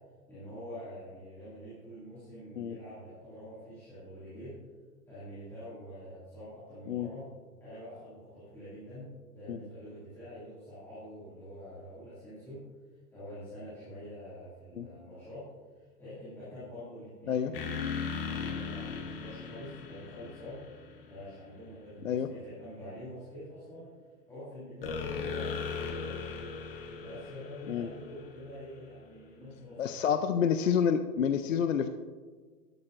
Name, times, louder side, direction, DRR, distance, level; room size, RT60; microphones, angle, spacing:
voice 1, 0.3-4.6 5.1-7.3 7.6-12.6 13.1-15.4 15.7-17.6 18.0-20.6 21.1-23.9 24.3-26.2 27.0-30.4, equal, 5° left, -14 dB, 2.2 m, -46 dB
sound 1, 17.5-21.2 24.8-28.7, left 5 dB, 35° left, 1.1 m, -38 dB
voice 2, 29.8-31.9, left 7 dB, 55° left, 9 dB, 0.5 m, -28 dB
12.5 x 11.5 x 2.5 m, 1.5 s
hypercardioid pair, 180°, 48 cm